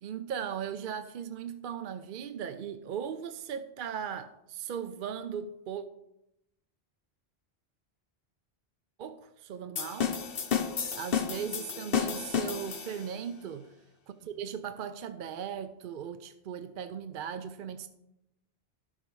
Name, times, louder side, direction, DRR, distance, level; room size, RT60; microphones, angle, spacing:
voice 1, 0.0-5.8 9.0-10.1 10.9-13.7 14.1-17.9, right 8 dB, 60° right, 0.6 m, -38 dB
sound 1, 9.8-13.2, left 7 dB, 60° left, 1.1 m, -32 dB
15.0 x 5.5 x 3.2 m
omnidirectional pair, 1.1 m